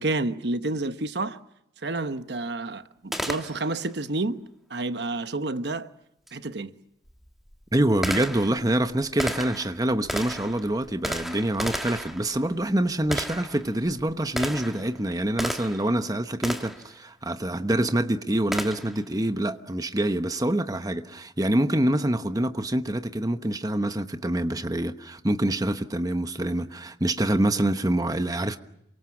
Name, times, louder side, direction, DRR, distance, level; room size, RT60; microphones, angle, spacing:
voice 1, 0.0-1.4 1.8-4.4 4.7-5.9 6.3-6.7, right 2 dB, 65° right, 1.1 m, -29 dB
Gunshot gunfire, 3.1-3.9 6.3-6.4 7.1-15.9 16.4-16.9 18.5-19.0, equal, ahead, 1.7 m, -34 dB
voice 2, 7.7-28.6, right 1 dB, 20° right, 1.1 m, -26 dB
28.0 x 24.5 x 7.2 m
head